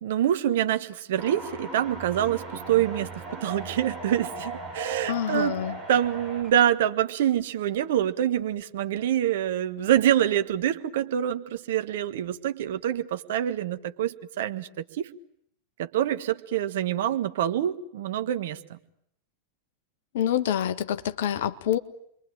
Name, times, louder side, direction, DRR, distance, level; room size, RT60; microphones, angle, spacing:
voice 1, 0.0-5.6 5.9-15.1 15.8-18.8, right 11 dB, 55° right, 1.6 m, -26 dB
sound 1, 1.2-6.5, right 3 dB, 5° right, 7.2 m, -38 dB
voice 2, 5.1-5.8 20.1-21.8, left 10 dB, 55° left, 1.6 m, -26 dB
29.0 x 23.0 x 9.0 m
figure-of-eight pair, 90°, 0 cm